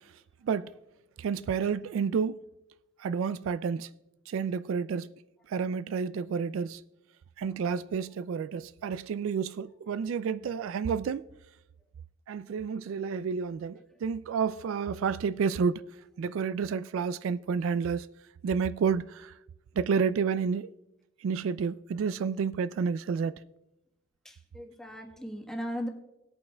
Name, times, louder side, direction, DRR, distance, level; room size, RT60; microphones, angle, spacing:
voice 1, 1.2-2.4 3.0-3.9 4.3-5.1 5.5-6.8 7.4-11.2 12.3-15.8 16.2-18.1 18.4-19.3 19.8-20.7 21.2-23.3, right 6 dB, 70° right, 0.3 m, -30 dB
voice 2, 24.2-25.9, equal, 5° left, 1.2 m, -39 dB
19.0 x 8.5 x 2.2 m
head